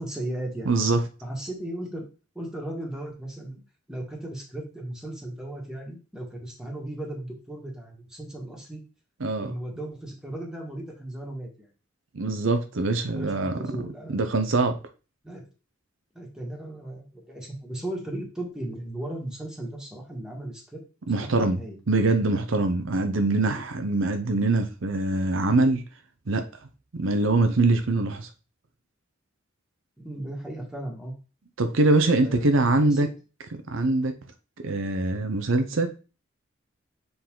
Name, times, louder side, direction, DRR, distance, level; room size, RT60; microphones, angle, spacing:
voice 1, 0.0-0.7 1.2-2.1 2.4-3.6 3.9-8.8 9.4-11.7 13.0-14.2 15.2-15.4 16.1-20.8 21.1-21.8 30.0-31.1 32.1-32.5 32.8-33.0, right 1 dB, 5° right, 1.9 m, -36 dB
voice 2, 0.7-1.0 9.2-9.5 12.1-13.5 14.1-14.8 21.1-25.8 26.3-26.4 26.9-28.3 31.6-33.1 33.5-34.1 34.6-35.9, right 2 dB, 75° right, 0.7 m, -23 dB
6.9 x 4.0 x 3.8 m
head